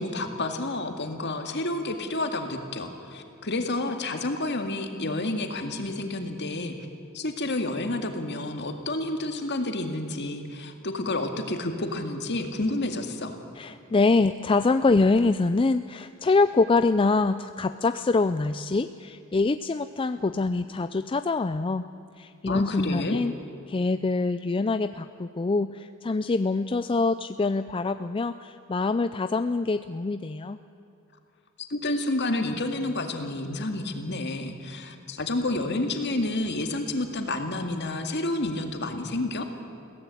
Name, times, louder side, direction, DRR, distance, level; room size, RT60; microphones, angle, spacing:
voice 1, 0.0-6.7 7.1-13.4 22.5-23.2 31.7-39.4, left 2 dB, 55° left, 5 dB, 2.1 m, -30 dB
voice 2, 13.5-21.9 22.2-23.3 23.7-30.6, left 3 dB, 25° left, 11 dB, 0.4 m, -25 dB
22.0 x 16.5 x 8.4 m, 2.8 s
head